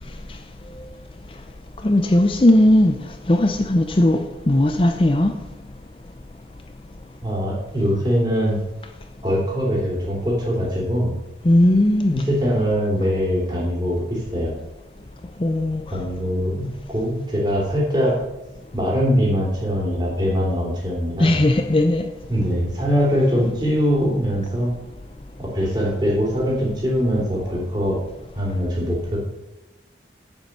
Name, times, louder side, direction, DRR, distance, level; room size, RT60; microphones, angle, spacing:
voice 1, 1.8-3.0 3.3-5.3 11.4-12.2 15.4-15.8 21.2-22.1, left 1 dB, 30° left, 0.5 m, -17 dB
voice 2, 7.2-8.6 9.2-11.2 12.1-14.5 15.9-18.2 18.7-21.4 22.3-24.7 25.4-28.0 28.3-29.2, equal, 25° right, 3.2 m, -22 dB
8.0 x 7.3 x 6.6 m
head